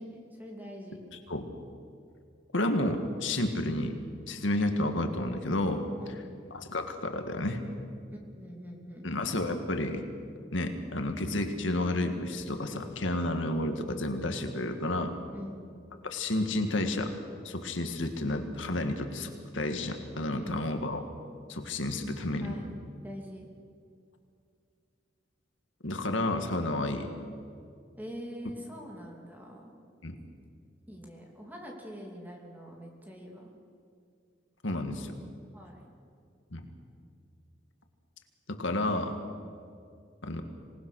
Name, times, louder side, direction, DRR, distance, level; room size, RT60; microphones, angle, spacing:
voice 1, 0.0-1.0 6.0-6.3 8.1-9.1 15.3-15.6 20.3-20.6 22.4-22.7 23.0-23.5 28.0-29.7 30.9-33.5 35.5-35.9, equal, 10° right, 0 dB, 3.0 m, -44 dB
voice 2, 1.1-1.5 2.5-4.0 4.3-5.8 6.5-7.6 9.0-10.0 10.5-15.1 16.0-17.1 17.4-21.1 21.5-22.5 25.8-27.1 30.0-30.2 34.6-35.1 36.5-36.6 38.5-39.2 40.2-40.4, left 1 dB, 75° left, 6 dB, 2.0 m, -31 dB
26.0 x 19.0 x 6.5 m, 2.3 s
head